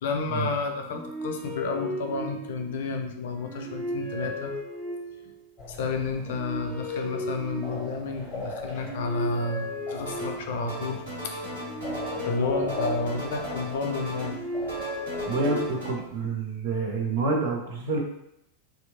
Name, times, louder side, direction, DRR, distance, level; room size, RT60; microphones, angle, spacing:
voice 1, 0.0-4.5 5.7-11.4 12.3-14.4, left 4 dB, 55° left, 4 dB, 0.4 m, -31 dB
sound 1, 0.7-2.8 3.3-5.4 6.0-8.2 8.7-10.7 11.4-13.5 14.0-16.0, equal, 5° right, 0.9 m, -36 dB
sound 2, 5.6-16.2, left 2 dB, 20° left, 1.0 m, -41 dB
sound 3, 10.0-10.4 10.7-12.4 12.7-14.4 14.7-15.9, equal, 75° right, 1.3 m, -37 dB
voice 2, 15.2-18.0, right 3 dB, 50° right, 0 dB, 0.6 m, -28 dB
2.8 x 2.4 x 2.4 m, 0.78 s
figure-of-eight pair, 90°, 0 cm